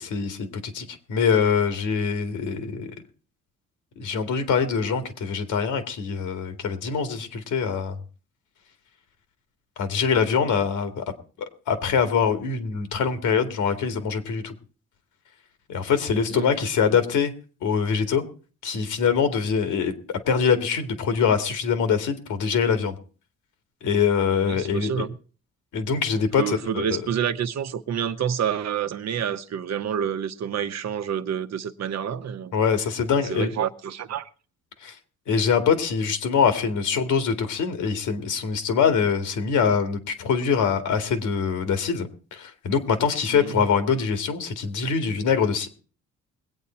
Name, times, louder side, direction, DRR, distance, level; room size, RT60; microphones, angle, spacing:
voice 1, 0.0-2.9 4.0-8.0 9.8-11.1 11.4-14.5 15.7-17.3 17.6-18.2 18.6-23.0 23.8-25.1 25.7-27.0 32.5-33.5 34.8-35.0 35.3-45.7, left 6 dB, 80° left, 2.1 m, -24 dB
voice 2, 24.4-25.2 26.4-32.5 33.2-34.3 43.3-43.6, right 8 dB, 60° right, 1.0 m, -28 dB
21.5 x 8.5 x 4.4 m
cardioid pair, 90°, 30 cm